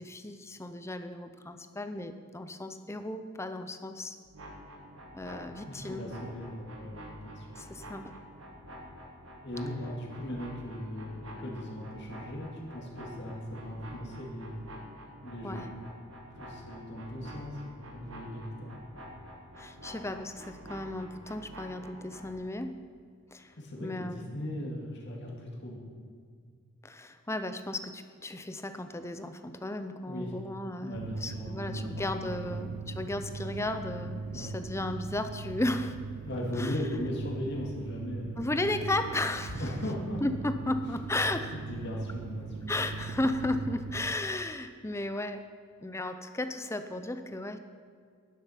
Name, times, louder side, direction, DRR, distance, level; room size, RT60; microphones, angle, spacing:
voice 1, 0.0-4.2 5.1-6.0 7.6-8.1 15.4-15.7 19.6-22.7 23.3-23.5 23.8-24.2 26.8-35.9 36.6-36.8 38.4-39.6 40.2-41.5 42.7-45.4 45.8-47.6, left 2 dB, 10° left, 9 dB, 0.6 m, -34 dB
sound 1, 4.2-22.3, equal, 60° right, 2.0 m, -48 dB
voice 2, 5.6-7.6 9.4-14.6 15.2-15.7 16.3-18.7 23.6-25.8 30.1-30.3 30.8-31.9 32.2-32.7 34.3-34.5 36.2-38.4 39.6-40.2 41.5-42.7, left 1 dB, 50° left, -2 dB, 2.3 m, -38 dB
sound 2, 30.9-44.2, right 4 dB, 75° right, 0.5 m, -40 dB
11.5 x 10.0 x 5.8 m, 2.1 s
head